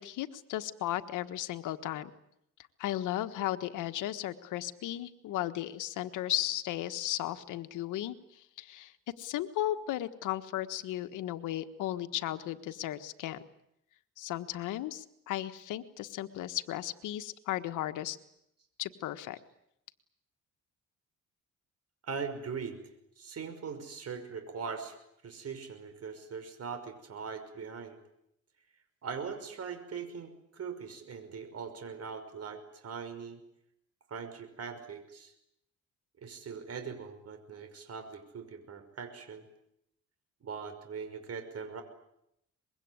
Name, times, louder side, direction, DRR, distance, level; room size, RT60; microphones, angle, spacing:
voice 1, 0.0-2.1 2.8-13.4 14.2-18.2 18.8-19.4, left 13 dB, 90° left, 10 dB, 1.5 m, -35 dB
voice 2, 22.0-22.8 23.2-25.0 25.2-28.0 29.0-33.4 34.1-35.3 36.2-39.5 40.4-41.8, right 6 dB, 55° right, 8 dB, 5.7 m, -41 dB
24.5 x 22.0 x 9.7 m, 0.79 s
cardioid pair, 90°, 30 cm